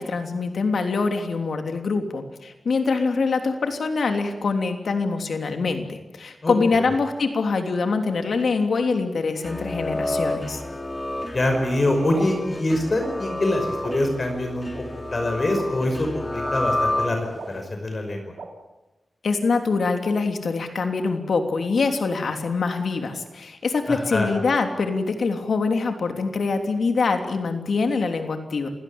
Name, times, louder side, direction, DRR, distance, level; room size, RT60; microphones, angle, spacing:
voice 1, 0.0-10.6 19.2-28.7, left 4 dB, 75° left, 6 dB, 3.1 m, -24 dB
voice 2, 6.4-6.8 11.3-14.7 15.1-18.3 23.9-24.3, left 1 dB, 45° left, 4 dB, 5.4 m, -24 dB
sound 1, 9.3-17.6, left 1 dB, 20° left, 3.5 m, -30 dB
sound 2, 11.4-11.5 12.2-12.3 13.0-13.1 13.8-13.9 14.7-14.8 15.5-15.6 16.4-16.5 17.4-17.5 18.4-18.5, right 5 dB, 75° right, 3.8 m, -37 dB
28.0 x 17.0 x 8.8 m, 1.0 s
cardioid pair, 65°, 0 cm